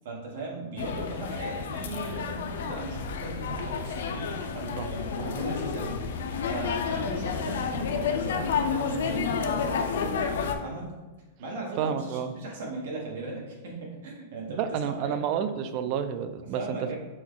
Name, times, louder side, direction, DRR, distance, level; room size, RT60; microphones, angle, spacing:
voice 1, 0.0-10.9 11.4-15.2 16.5-17.0, right 3 dB, 65° right, -1 dB, 1.4 m, -38 dB
sound 1, 0.8-10.6, left 6 dB, 75° left, 0.4 m, -30 dB
voice 2, 11.8-12.3 14.5-16.9, right 8 dB, 40° right, 10 dB, 0.3 m, -30 dB
6.1 x 2.3 x 3.7 m, 1.2 s
supercardioid pair, 155°, 0 cm